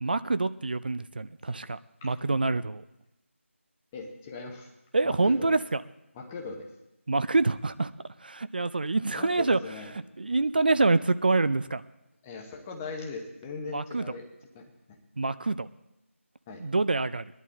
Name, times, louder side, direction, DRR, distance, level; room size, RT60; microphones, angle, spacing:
voice 1, 0.0-2.8 4.9-5.8 7.1-7.9 8.2-9.6 10.2-11.8 13.7-14.0 15.2-15.7 16.6-17.3, right 3 dB, 45° right, 14 dB, 0.4 m, -26 dB
voice 2, 3.9-4.7 5.0-5.5 6.1-6.7 9.1-9.9 12.2-14.2 14.5-15.0 16.5-16.6, left 4 dB, 10° left, 1 dB, 0.8 m, -39 dB
18.5 x 11.0 x 3.7 m, 0.91 s
figure-of-eight pair, 170°, 7 cm